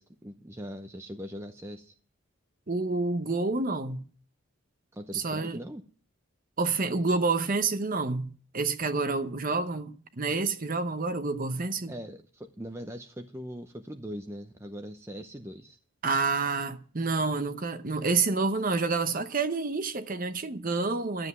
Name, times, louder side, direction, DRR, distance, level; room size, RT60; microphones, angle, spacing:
voice 1, 0.0-1.9 4.9-5.8 11.9-15.8, equal, 10° right, 0.7 m, -41 dB
voice 2, 2.7-4.0 5.1-5.6 6.6-11.9 16.0-21.3, right 3 dB, 40° right, 0.8 m, -28 dB
12.5 x 7.8 x 9.4 m
head